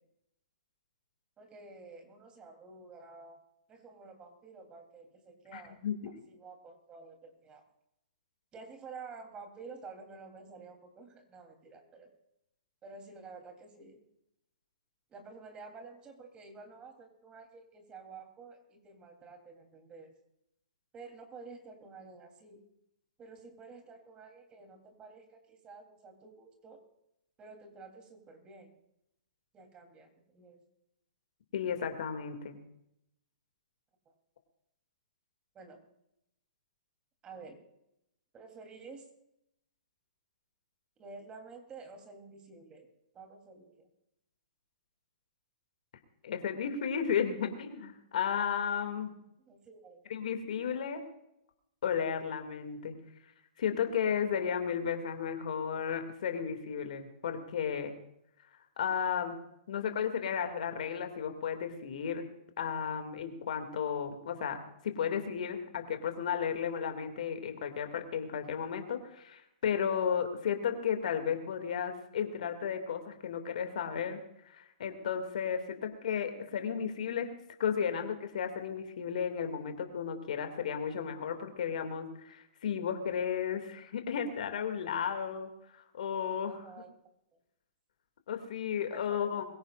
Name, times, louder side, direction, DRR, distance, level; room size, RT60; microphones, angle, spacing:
voice 1, 1.4-3.4 3.7-5.8 6.3-7.6 8.5-12.1 12.8-14.0 15.1-20.1 20.9-22.6 23.2-26.8 27.4-28.7 29.5-30.6 34.0-34.1 35.5-35.8 37.2-37.6 38.3-39.1 41.0-42.9 43.1-43.9 49.4-50.1 86.5-86.9 89.2-89.4, right 4 dB, 20° right, 4 dB, 3.3 m, -50 dB
voice 2, 5.5-6.0 31.5-32.6 46.2-49.1 50.1-51.0 51.8-52.9 53.6-57.9 58.8-59.4 59.7-62.3 62.6-77.3 77.6-86.7 88.3-89.4, left 7 dB, 65° left, 6 dB, 2.4 m, -34 dB
22.5 x 16.5 x 2.5 m, 0.81 s
hypercardioid pair, 125°, 4 cm